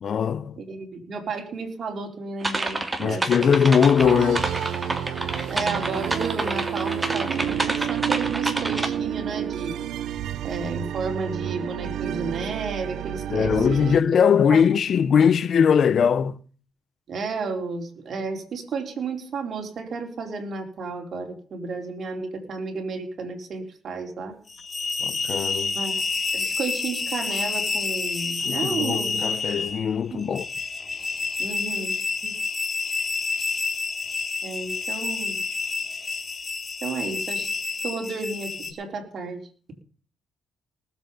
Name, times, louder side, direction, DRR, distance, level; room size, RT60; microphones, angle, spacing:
voice 1, 0.0-0.6 3.0-4.5 13.3-16.4 25.0-25.8 28.4-30.4, left 7 dB, 55° left, 0.8 m, -20 dB
voice 2, 0.6-3.5 5.5-9.8 10.4-13.8 14.3-14.8 17.1-24.3 25.7-25.9 26.3-29.1 30.1-30.3 31.4-32.0 32.2-32.4 34.4-35.4 36.8-37.5 37.8-39.4, right 4 dB, 55° right, 4.3 m, -32 dB
sound 1, 2.4-8.9, right 2 dB, 20° right, 2.3 m, -28 dB
sound 2, 4.0-14.0, right 10 dB, 75° right, 0.8 m, -30 dB
sound 3, 24.5-38.7, left 4 dB, 35° left, 2.5 m, -29 dB
19.5 x 8.1 x 5.6 m
cardioid pair, 90°, 0 cm